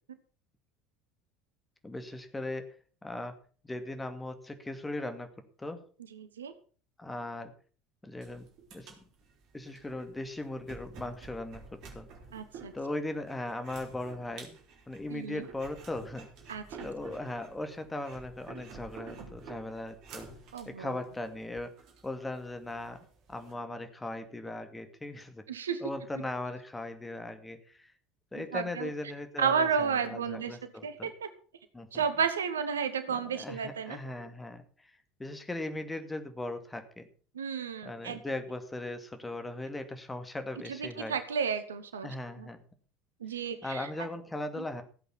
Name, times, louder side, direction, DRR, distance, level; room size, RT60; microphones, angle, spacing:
voice 1, 1.8-2.7 3.0-3.3 3.7-5.3 5.6-5.8 7.0-7.5 8.0-8.5 8.7-8.9 9.5-12.1 12.7-14.6 14.9-16.3 16.8-20.3 20.7-21.7 22.0-23.0 23.3-25.4 25.8-27.9 28.3-31.1 31.7-32.0 33.1-34.6 35.2-37.1 37.8-41.2 42.0-42.6 43.6-44.8, left 2 dB, 10° left, 8 dB, 2.3 m, -38 dB
voice 2, 6.1-6.5 12.3-12.7 15.1-15.5 16.5-16.6 20.5-21.0 25.5-25.8 28.4-28.9 29.4-31.3 31.9-34.0 37.3-38.2 40.7-42.1 42.4-42.5 43.2-43.9 44.6-44.7, right 6 dB, 75° right, 11 dB, 1.2 m, -32 dB
sound 1, 8.2-23.5, right 4 dB, 45° right, 3.8 m, -50 dB
16.0 x 8.3 x 6.0 m, 0.41 s
figure-of-eight pair, 70°, 0 cm